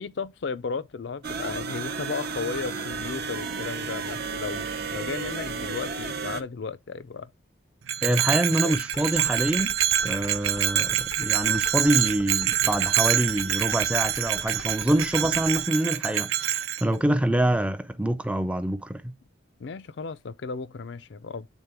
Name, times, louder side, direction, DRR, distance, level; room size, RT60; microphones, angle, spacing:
voice 1, 0.0-7.3 8.6-8.7 15.2-15.4 19.6-21.5, left 4 dB, 60° left, 0.4 m, -34 dB
sound 1, 1.2-6.4, right 5 dB, 50° right, 0.7 m, -33 dB
Bell, 7.9-16.8, right 11 dB, 85° right, 0.7 m, -26 dB
voice 2, 8.0-9.7 10.0-19.1, right 1 dB, 5° right, 0.4 m, -26 dB
sound 2, 8.7-15.6, left 4 dB, 90° left, 0.9 m, -41 dB
8.1 x 3.7 x 3.4 m
head